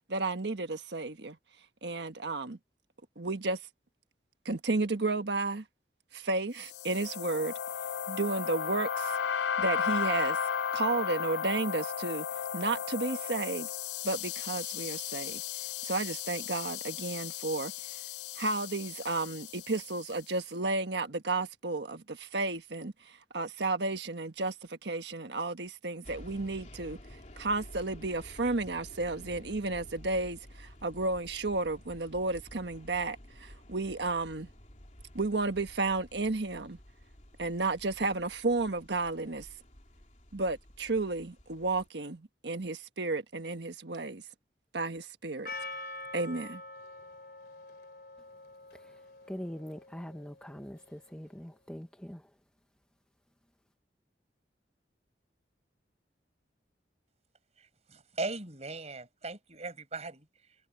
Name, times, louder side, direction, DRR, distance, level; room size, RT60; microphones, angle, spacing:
voice 1, 0.1-1.4 1.8-2.6 3.2-3.6 4.4-5.6 6.1-7.5 8.1-9.2 9.6-10.4 10.7-12.3 12.5-13.7 14.0-15.4 15.8-17.7 18.4-27.0 27.4-34.5 35.1-36.8 37.4-39.5 40.3-44.2 44.7-45.5 46.1-46.6, right 3 dB, 75° right, 1.4 m, -32 dB
sound 1, 6.6-20.0, left 8 dB, 80° left, 0.5 m, -35 dB
sound 2, 26.0-41.9, left 1 dB, 45° left, 3.0 m, -52 dB
Percussion, 45.5-50.4, left 2 dB, 60° left, 2.9 m, -45 dB
voice 2, 48.7-52.3, equal, 5° left, 0.8 m, -43 dB
voice 3, 57.6-60.6, right 3 dB, 40° right, 5.7 m, -39 dB
head